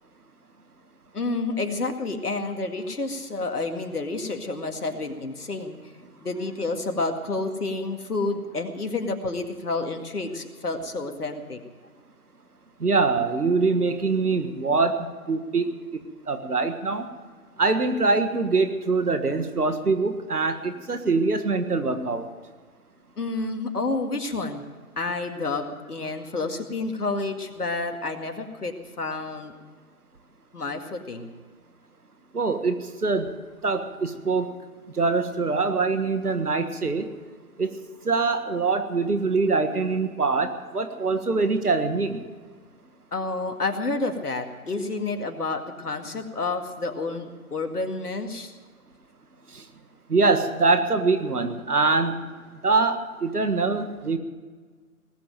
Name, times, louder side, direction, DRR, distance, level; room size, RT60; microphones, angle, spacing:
voice 1, 1.1-5.8 6.2-11.6 23.2-24.6 25.0-29.5 30.5-31.3 43.1-48.5, left 3 dB, 80° left, 6 dB, 2.2 m, -29 dB
voice 2, 12.8-16.0 16.3-17.1 17.6-22.3 32.3-33.3 33.6-34.5 35.0-37.1 37.6-37.8 38.1-42.2 49.5-49.6 50.1-52.3 52.6-54.2, right 3 dB, 80° right, 8 dB, 1.7 m, -24 dB
19.0 x 7.9 x 8.9 m, 1.5 s
figure-of-eight pair, 155°, 45 cm